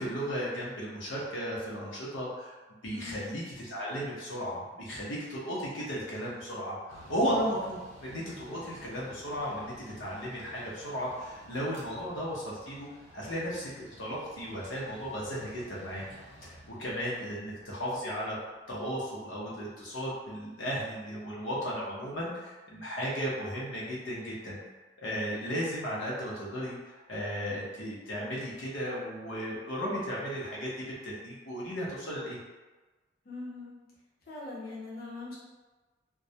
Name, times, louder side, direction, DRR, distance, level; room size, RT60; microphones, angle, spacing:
voice 1, 0.0-12.9 13.1-16.0 16.4-18.4 18.7-24.6 25.0-30.7 31.0-32.4, equal, 90° left, -6 dB, 0.7 m, -35 dB
voice 2, 2.9-3.3 17.2-17.4 33.2-33.7 34.3-35.4, left 3 dB, 50° left, -7 dB, 0.6 m, -41 dB
Mechanical fan, 6.9-20.2, equal, 40° right, 0.5 m, -54 dB
2.2 x 2.0 x 2.7 m, 1.2 s
head